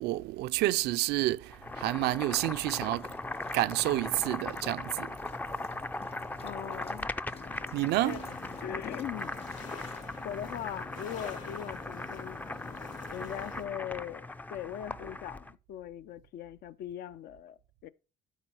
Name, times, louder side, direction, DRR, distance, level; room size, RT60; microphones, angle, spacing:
voice 1, 0.0-3.1 3.5-5.1 7.7-8.2, right 17 dB, 80° right, 0.4 m, -29 dB
Boiling, 1.5-15.5, left 2 dB, 10° left, 0.4 m, -39 dB
sound 1, 2.5-10.1, left 4 dB, 35° left, 1.2 m, -56 dB
voice 2, 6.4-7.1 8.0-8.2 8.6-9.4 10.2-12.4 12.8-17.9, left 11 dB, 65° left, 0.5 m, -40 dB
sound 2, 7.3-13.6, left 6 dB, 50° left, 2.9 m, -47 dB
12.0 x 4.1 x 4.3 m
cardioid pair, 110°, 17 cm